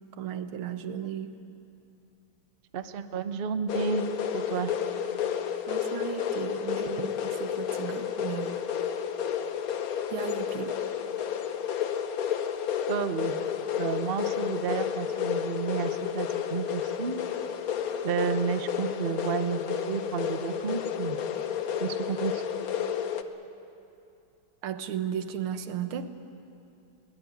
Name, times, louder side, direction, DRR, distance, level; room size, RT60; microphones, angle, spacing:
voice 1, 0.2-1.3 5.7-8.6 10.1-10.8 24.6-26.2, right 9 dB, 90° right, 9 dB, 1.9 m, -35 dB
voice 2, 2.7-4.1 4.3-4.7 12.9-13.4 13.8-17.2 18.0-21.2 21.8-22.4, right 6 dB, 60° right, 10 dB, 0.5 m, -31 dB
sound 1, 3.7-23.2, left 8 dB, 55° left, 1.1 m, -31 dB
22.0 x 18.5 x 9.3 m, 2.6 s
omnidirectional pair, 2.3 m